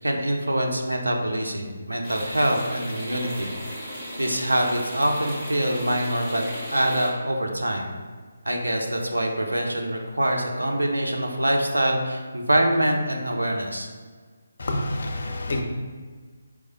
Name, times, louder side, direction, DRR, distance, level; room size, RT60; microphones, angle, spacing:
voice 1, 0.0-3.5 4.2-6.4 6.7-7.9 8.4-13.9, right 1 dB, 80° right, 1 dB, 0.6 m, -24 dB
sound 1, 2.0-7.1, equal, 15° right, 1.2 m, -36 dB
voice 2, 14.6-15.6, left 1 dB, 55° left, 2 dB, 0.6 m, -27 dB
4.7 x 2.1 x 4.1 m, 1.5 s
figure-of-eight pair, 150°, 0 cm